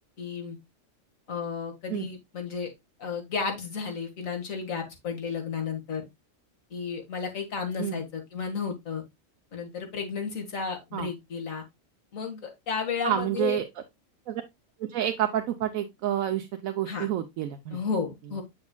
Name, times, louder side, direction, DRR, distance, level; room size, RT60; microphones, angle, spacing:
voice 1, 0.2-0.6 1.3-2.7 3.0-6.1 6.7-9.0 9.5-11.6 12.1-13.6 16.9-17.1 17.7-18.4, left 5 dB, 75° left, 2.0 m, -33 dB
voice 2, 13.0-13.6 14.3-14.4 14.9-17.8, right 11 dB, 85° right, 1.1 m, -29 dB
7.0 x 6.5 x 2.2 m
omnidirectional pair, 1.4 m